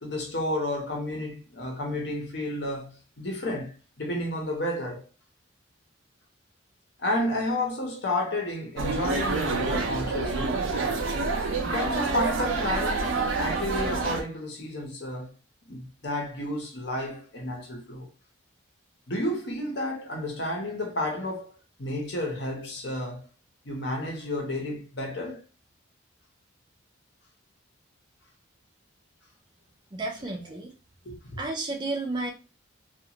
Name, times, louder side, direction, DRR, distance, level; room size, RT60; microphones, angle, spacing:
voice 1, 0.0-5.0 7.0-10.6 11.6-15.3 15.7-18.1 19.1-21.5 21.8-23.3 23.6-25.4 31.0-31.4, left 1 dB, 60° left, 0.9 m, -31 dB
sound 1, 8.8-14.2, right 3 dB, 85° right, 0.5 m, -27 dB
voice 2, 29.9-30.7 31.4-32.3, right 2 dB, 25° right, 0.4 m, -32 dB
2.5 x 2.4 x 2.8 m
head